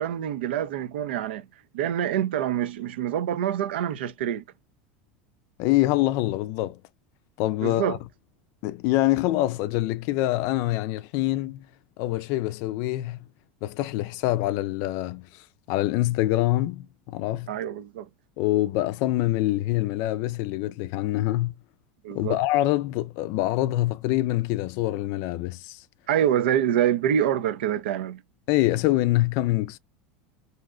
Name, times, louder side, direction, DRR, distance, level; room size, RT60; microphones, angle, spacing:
voice 1, 0.0-1.4 1.7-4.4 7.6-8.0 17.5-18.1 22.0-22.4 26.1-28.2, right 10 dB, 85° right, 0.5 m, -26 dB
voice 2, 5.6-6.8 7.4-8.0 8.6-11.7 12.0-13.2 13.6-15.3 15.7-17.5 18.4-21.5 22.1-25.8 28.5-29.8, left 16 dB, 60° left, 0.4 m, -25 dB
2.7 x 2.2 x 3.6 m
supercardioid pair, 115°, 6 cm